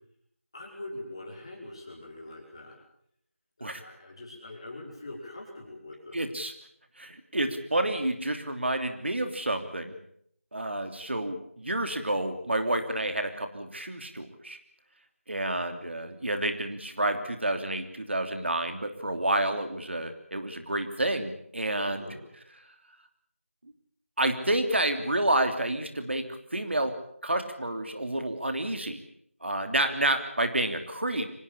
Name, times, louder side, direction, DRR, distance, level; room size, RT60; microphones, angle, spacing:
voice 1, 0.5-2.8 3.6-6.2 21.8-22.2, left 1 dB, 25° left, -1 dB, 5.2 m, -43 dB
voice 2, 6.1-6.5 7.0-9.9 10.5-14.6 15.3-22.1 24.2-29.0 29.4-31.3, right 1 dB, 55° right, 7 dB, 3.1 m, -29 dB
25.0 x 19.0 x 8.7 m, 0.69 s
figure-of-eight pair, 180°, 7 cm